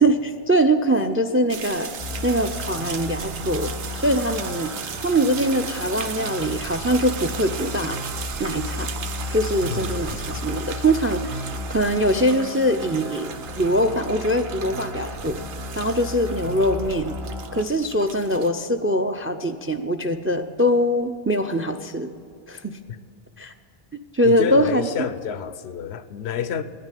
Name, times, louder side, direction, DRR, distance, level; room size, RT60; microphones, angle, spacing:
voice 1, 0.0-1.9 2.2-4.7 5.0-8.0 8.4-8.9 9.3-11.4 11.7-13.3 13.6-15.4 15.8-17.2 17.5-22.1 22.5-22.8 23.4-23.5 24.1-25.1, equal, 25° right, 9 dB, 0.3 m, -22 dB
sound 1, 1.5-18.5, right 6 dB, 60° right, 0.9 m, -36 dB
sound 2, 2.0-17.7, left 1 dB, 75° right, 1.8 m, -34 dB
voice 2, 9.7-10.3 24.2-26.6, left 8 dB, 90° left, 13 dB, 0.9 m, -29 dB
10.0 x 9.8 x 9.2 m, 2.4 s
omnidirectional pair, 1.1 m